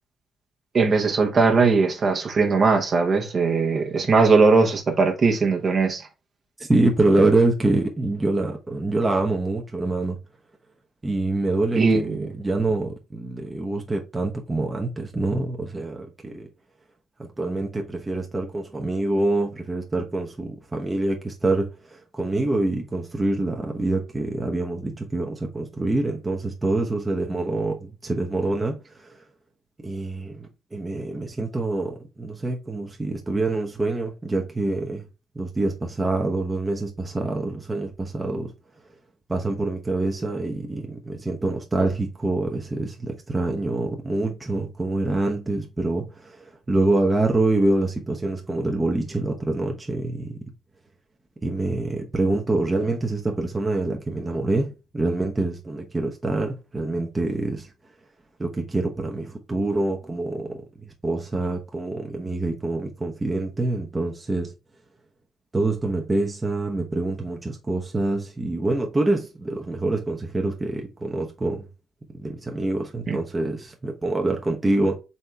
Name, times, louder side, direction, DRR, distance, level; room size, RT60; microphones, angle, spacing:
voice 1, 0.7-6.0 11.7-12.3 73.1-73.2, right 4 dB, 45° right, 1.2 m, -19 dB
voice 2, 6.7-10.2 11.0-16.5 17.2-28.8 29.8-35.1 35.3-38.5 39.3-50.4 51.4-57.7 58.4-60.6 61.0-64.5 65.5-71.6 72.1-75.0, right 2 dB, 20° right, 1.0 m, -25 dB
4.2 x 3.6 x 3.3 m
cardioid pair, 90°, 0 cm